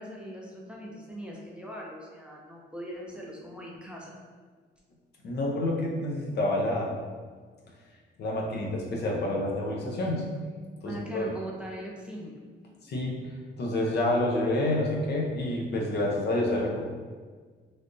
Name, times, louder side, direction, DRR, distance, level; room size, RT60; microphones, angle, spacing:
voice 1, 0.0-4.2 10.8-12.4 12.9-13.0, equal, 5° right, -3 dB, 0.5 m, -40 dB
voice 2, 5.2-6.9 8.2-10.3 10.8-11.3 12.8-16.8, left 1 dB, 55° left, -1 dB, 0.7 m, -28 dB
3.3 x 2.5 x 2.6 m, 1.5 s
cardioid pair, 90°, 20 cm